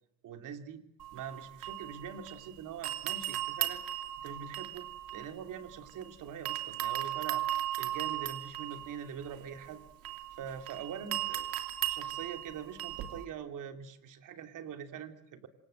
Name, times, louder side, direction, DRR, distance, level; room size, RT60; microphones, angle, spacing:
voice 1, 0.2-0.8 1.1-3.8 4.2-4.9 5.1-7.4 7.8-9.8 10.3-11.5 11.9-15.5, right 8 dB, 60° right, 7 dB, 2.9 m, -43 dB
sound 1, 1.0-2.5 2.8-6.0 6.5-13.2, right 12 dB, 80° right, 3.0 m, -37 dB
27.5 x 26.0 x 7.7 m, 0.76 s
cardioid pair, 150°, 35 cm